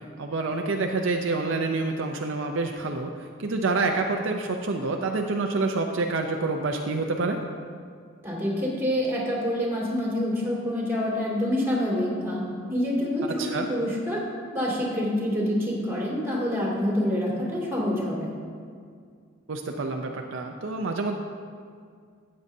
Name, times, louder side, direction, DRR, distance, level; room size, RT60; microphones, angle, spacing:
voice 1, 0.2-3.1 3.4-7.4 13.4-13.7 19.5-21.2, right 3 dB, 65° right, 3 dB, 0.5 m, -27 dB
voice 2, 8.2-12.4 12.7-14.2 14.5-18.3, left 1 dB, 10° right, -5 dB, 2.4 m, -27 dB
13.5 x 8.6 x 2.7 m, 2.1 s
head